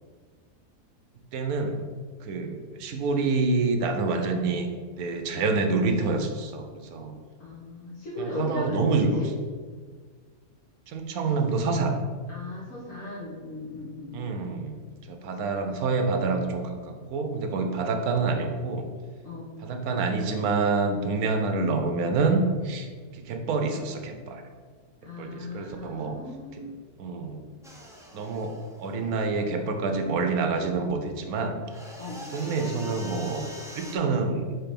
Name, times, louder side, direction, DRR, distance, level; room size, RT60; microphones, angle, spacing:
voice 1, 1.3-1.8 2.2-4.7 5.0-7.2 8.2-9.2 10.9-12.0 14.1-14.8 15.1-18.9 19.6-24.4 25.2-26.2 27.0-27.4 28.1-31.6 32.3-34.6, right 3 dB, 70° right, 5 dB, 1.2 m, -27 dB
voice 2, 7.4-9.3 12.3-14.2 19.2-19.5 25.0-26.7 32.0-32.2, left 2 dB, 55° left, -7 dB, 1.7 m, -37 dB
sound 1, 27.6-29.7 31.7-34.0, equal, 5° right, 0.5 m, -44 dB
4.5 x 4.2 x 5.2 m, 1.5 s
omnidirectional pair, 1.6 m